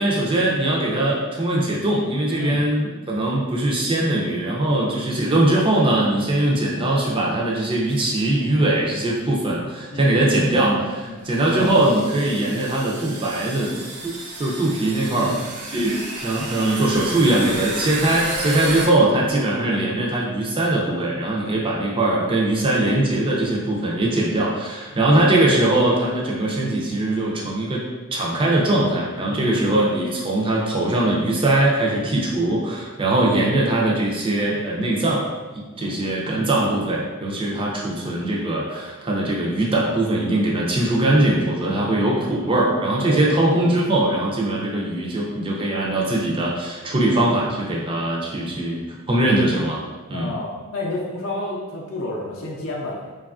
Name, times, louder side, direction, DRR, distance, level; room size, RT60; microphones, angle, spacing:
voice 1, 0.0-13.7 14.0-14.1 14.4-15.3 15.7-27.8 28.1-35.3 35.8-48.8 49.1-49.8 50.1-50.3, right 1 dB, 25° right, -3 dB, 0.4 m, -21 dB
sound 1, 7.9-8.2 9.2-9.3 10.4-10.5 11.3-18.9, right 2 dB, 90° right, 0.5 m, -32 dB
voice 2, 9.9-10.3 11.0-11.2 15.1-15.4 18.6-18.8 24.9-25.1 29.2-29.7 35.8-36.0 41.7-42.0 43.0-43.3 50.1-53.1, left 2 dB, 60° left, -3 dB, 0.5 m, -31 dB
3.0 x 2.3 x 2.4 m, 1.3 s
head